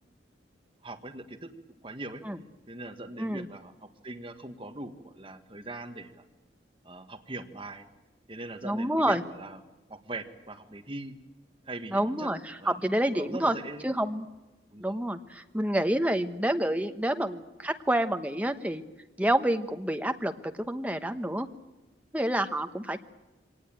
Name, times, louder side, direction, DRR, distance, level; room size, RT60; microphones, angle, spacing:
voice 1, 0.8-1.5 1.8-2.2 2.7-6.1 6.8-7.9 8.3-9.6 9.9-11.1 11.6-12.3 12.6-12.8 13.1-13.9 14.7-15.0, right 2 dB, 30° right, 4 dB, 1.6 m, -41 dB
voice 2, 8.6-9.2 11.9-12.4 12.7-13.5 13.8-14.2 14.8-18.8 19.2-20.3 20.6-21.5 22.1-23.1, right 1 dB, 10° right, 7 dB, 1.1 m, -28 dB
24.5 x 18.5 x 9.1 m, 1.1 s
head